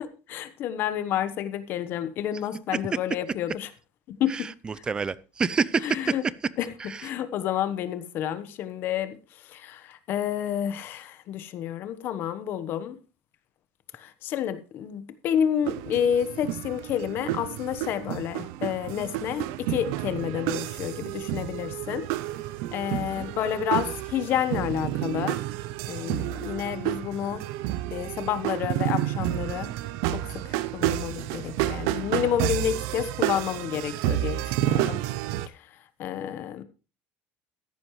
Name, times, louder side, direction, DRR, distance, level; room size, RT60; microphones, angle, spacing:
voice 1, 0.3-3.7 4.2-4.5 5.8-6.2 6.6-6.7 7.0-9.2 9.4-13.0 13.9-22.1 22.7-25.4 25.9-27.4 27.9-29.7 30.1-35.0 35.5-35.7 36.0-36.6, left 10 dB, 45° left, 13 dB, 1.1 m, -29 dB
voice 2, 4.3-6.1 6.8-7.0 22.9-23.3, right 5 dB, 20° right, 20 dB, 0.5 m, -28 dB
sound 1, 15.7-35.5, right 14 dB, 75° right, 0.5 m, -30 dB
14.0 x 10.5 x 3.2 m, 0.32 s
cardioid pair, 150°, 5 cm